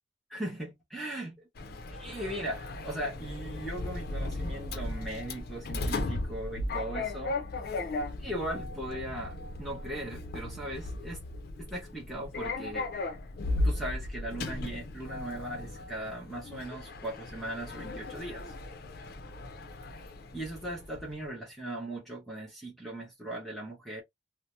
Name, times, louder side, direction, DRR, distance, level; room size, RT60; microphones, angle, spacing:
voice 1, 0.3-1.4 1.9-7.4 8.2-11.2 11.6-12.9 13.6-18.5 20.3-24.0, right 1 dB, ahead, 0.8 m, -38 dB
Sliding door, 1.6-21.2, left 2 dB, 55° left, 0.5 m, -36 dB
2.7 x 2.0 x 3.1 m
head